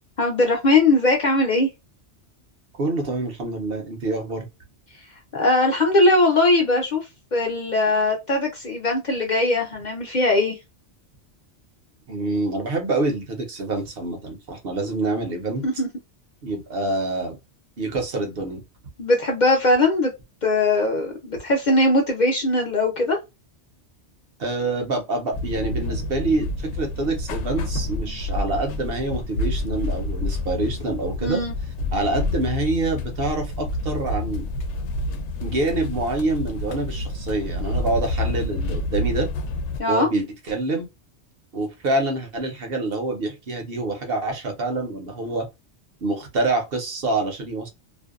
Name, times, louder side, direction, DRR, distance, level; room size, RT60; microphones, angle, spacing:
voice 1, 0.2-1.7 5.3-10.6 15.6-15.9 19.0-20.1 20.4-23.2 31.2-31.5 39.8-40.1, left 2 dB, 50° left, 0.6 m, -20 dB
voice 2, 2.8-4.5 12.1-15.6 16.4-17.4 17.8-18.6 24.4-31.4 31.9-34.4 35.4-39.3 39.9-40.9 41.5-45.5 46.0-47.7, right 2 dB, 60° right, 0.9 m, -26 dB
sound 1, 25.3-39.8, left 2 dB, 75° left, 0.8 m, -28 dB
2.6 x 2.1 x 2.3 m
omnidirectional pair, 1.2 m